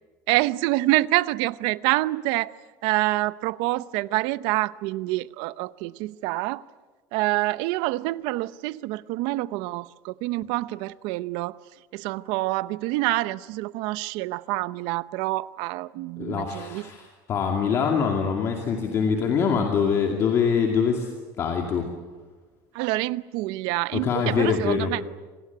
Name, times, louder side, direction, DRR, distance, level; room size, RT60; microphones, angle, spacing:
voice 1, 0.3-2.5 2.8-6.6 7.1-11.6 11.9-16.8 22.7-25.0, right 19 dB, 60° right, 0.7 m, -26 dB
voice 2, 16.2-21.1 21.4-21.9 23.9-24.9, left 6 dB, 30° left, 2.4 m, -24 dB
26.5 x 19.5 x 9.4 m
cardioid pair, 170°, 9 cm